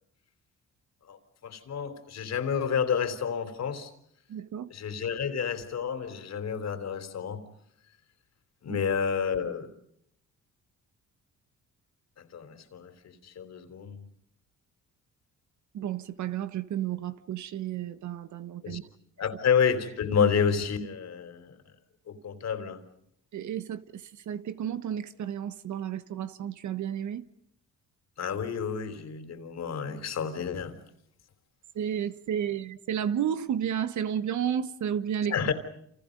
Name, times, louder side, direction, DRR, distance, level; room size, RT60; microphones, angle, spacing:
voice 1, 1.1-3.9 4.7-7.4 8.6-9.7 12.2-14.0 18.6-18.8 19.2-21.6 22.1-22.8 28.2-30.8 35.3-35.5, left 7 dB, 60° left, 3.7 m, -30 dB
voice 2, 4.3-4.7 8.7-8.8 15.7-18.8 23.3-27.2 31.7-35.3, right 9 dB, 70° right, 1.5 m, -32 dB
29.5 x 28.5 x 5.3 m
cardioid pair, 90°, 30 cm